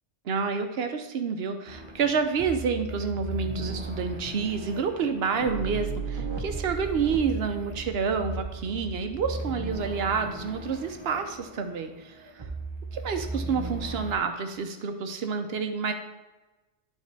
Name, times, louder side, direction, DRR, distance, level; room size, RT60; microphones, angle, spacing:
voice 1, 0.3-12.5 12.9-15.9, right 5 dB, 55° right, 7 dB, 0.9 m, -29 dB
sound 1, 1.7-14.2, right 3 dB, 25° right, 0.7 m, -36 dB
11.5 x 3.8 x 3.3 m, 1.1 s
omnidirectional pair, 1.3 m